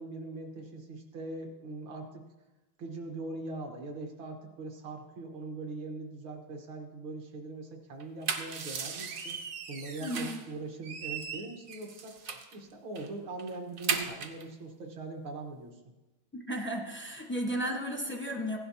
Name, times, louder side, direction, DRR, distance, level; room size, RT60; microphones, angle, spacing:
voice 1, 0.0-2.2 2.8-12.2 12.5-15.8, right 2 dB, 75° right, 2 dB, 2.1 m, -41 dB
sound 1, 8.0-10.5 10.8-12.5 12.9-13.1 13.4-14.4, right 6 dB, 55° right, 1.0 m, -37 dB
voice 2, 10.0-10.4 16.3-18.6, equal, 10° left, 1 dB, 0.5 m, -34 dB
16.0 x 11.0 x 2.8 m, 1.1 s
omnidirectional pair, 2.2 m